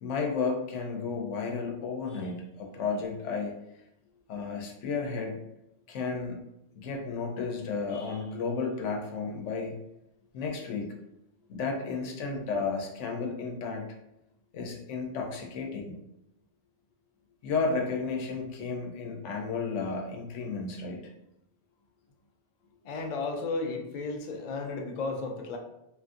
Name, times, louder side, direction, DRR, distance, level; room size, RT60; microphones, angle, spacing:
voice 1, 0.0-3.5 4.3-5.4 5.9-6.4 6.7-9.7 10.3-10.9 11.5-13.8 14.5-15.9 17.4-21.0, left 4 dB, 85° left, 1 dB, 0.9 m, -33 dB
voice 2, 22.8-25.6, left 3 dB, 60° left, 2 dB, 0.4 m, -33 dB
2.9 x 2.5 x 2.4 m, 0.87 s
omnidirectional pair, 1.2 m